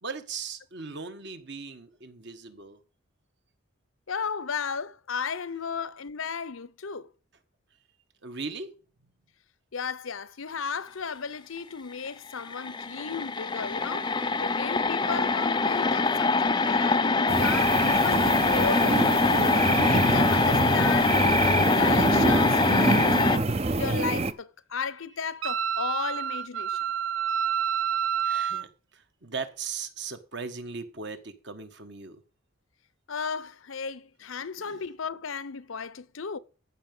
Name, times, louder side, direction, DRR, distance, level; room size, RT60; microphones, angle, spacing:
voice 1, 0.0-2.8 8.2-8.7 28.2-32.2 34.6-34.8, right 5 dB, 55° right, 1.5 m, -38 dB
voice 2, 4.1-7.1 9.7-23.5 23.8-26.8 33.1-36.4, left 6 dB, 75° left, 0.7 m, -35 dB
sound 1, 12.1-12.2 12.4-23.4, left 3 dB, 20° left, 0.4 m, -24 dB
sound 2, 17.3-24.3, right 3 dB, 30° right, 0.6 m, -26 dB
Wind instrument woodwind instrument, 25.4-28.6, right 8 dB, 70° right, 0.7 m, -28 dB
14.5 x 5.9 x 5.5 m
head